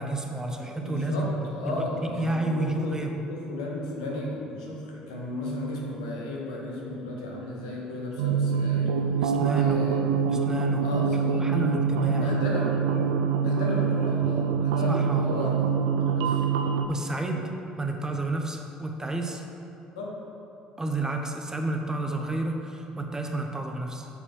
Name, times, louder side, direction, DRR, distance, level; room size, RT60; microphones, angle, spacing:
voice 1, 0.0-3.2 9.2-9.8 10.3-11.1 11.4-12.3 14.9-15.4 16.9-17.5 17.8-19.4 20.8-24.1, right 2 dB, 15° right, 3 dB, 0.8 m, -30 dB
voice 2, 0.8-8.9 9.6-10.1 10.8-11.6 12.1-16.4 19.9-20.2, left 1 dB, 75° left, -2 dB, 1.1 m, -34 dB
sound 1, 8.2-16.9, right 6 dB, 75° right, 0.3 m, -25 dB
6.9 x 4.3 x 4.5 m, 2.9 s
hypercardioid pair, 55°, 4 cm